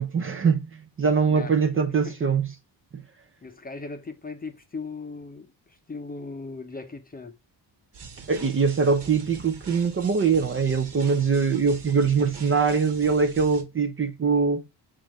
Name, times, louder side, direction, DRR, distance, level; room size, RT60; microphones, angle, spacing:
voice 1, 0.0-2.5 2.9-3.0 8.3-14.6, right 5 dB, 30° right, 0.6 m, -23 dB
voice 2, 3.4-5.5 5.9-7.4, left 3 dB, 20° left, 0.7 m, -38 dB
sound 1, 7.9-13.6, right 5 dB, 75° right, 1.4 m, -44 dB
4.0 x 3.9 x 3.1 m
cardioid pair, 105°, 42 cm